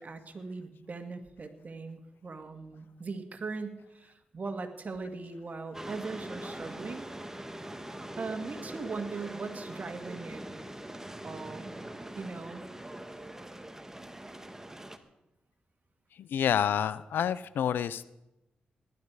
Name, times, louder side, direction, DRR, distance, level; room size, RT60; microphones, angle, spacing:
voice 1, 0.0-7.1 8.2-10.4 11.2-11.8 12.2-12.6, right 4 dB, 50° right, 6 dB, 2.0 m, -39 dB
sound 1, 5.7-15.0, right 1 dB, 15° right, 1.6 m, -43 dB
voice 2, 16.1-18.1, left 9 dB, 85° left, 17 dB, 0.5 m, -28 dB
18.5 x 12.0 x 4.8 m, 0.90 s
supercardioid pair, 50°, 3 cm